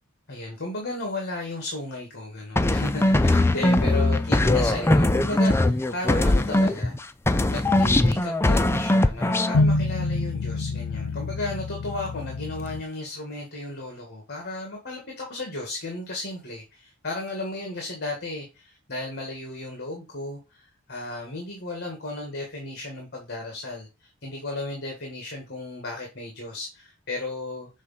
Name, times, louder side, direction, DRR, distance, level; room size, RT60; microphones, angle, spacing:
voice 1, 0.3-7.0 7.5-27.7, left 2 dB, 50° left, 1.8 m, -34 dB
brane gru, 2.6-7.0 7.3-9.6, left 1 dB, 10° left, 0.4 m, -21 dB
sound 1, 9.5-12.8, left 2 dB, 70° left, 0.5 m, -26 dB
6.4 x 3.6 x 5.7 m
head